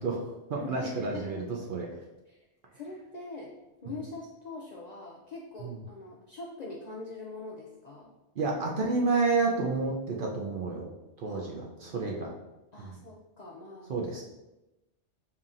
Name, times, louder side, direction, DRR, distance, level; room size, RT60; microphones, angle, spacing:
voice 1, 0.0-1.4 1.7-1.9 5.6-5.8 8.4-10.9 11.2-12.3 12.8-12.9 13.9-14.2, right 3 dB, 60° right, -1 dB, 0.6 m, -30 dB
voice 2, 0.6-1.5 2.3-2.5 2.7-3.5 3.8-8.1 11.2-12.1 12.7-13.9, left 2 dB, 60° left, -3 dB, 0.4 m, -43 dB
5.4 x 2.8 x 2.4 m, 0.99 s
omnidirectional pair, 1.2 m